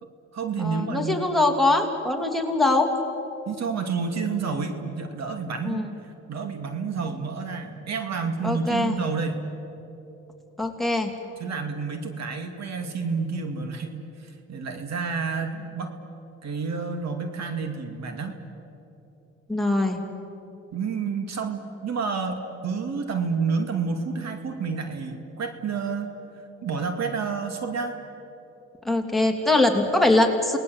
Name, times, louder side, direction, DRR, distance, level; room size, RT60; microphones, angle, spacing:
voice 1, 0.0-1.3 3.5-9.4 11.4-15.9 16.4-18.4 20.7-26.1 26.6-28.0, right 5 dB, 60° right, 6 dB, 2.5 m, -29 dB
voice 2, 0.6-2.9 5.6-5.9 8.4-9.0 10.6-11.1 19.5-20.0 28.8-30.6, left 2 dB, ahead, 4 dB, 2.9 m, -22 dB
29.0 x 19.5 x 8.1 m, 3.0 s
cardioid pair, 90°, 30 cm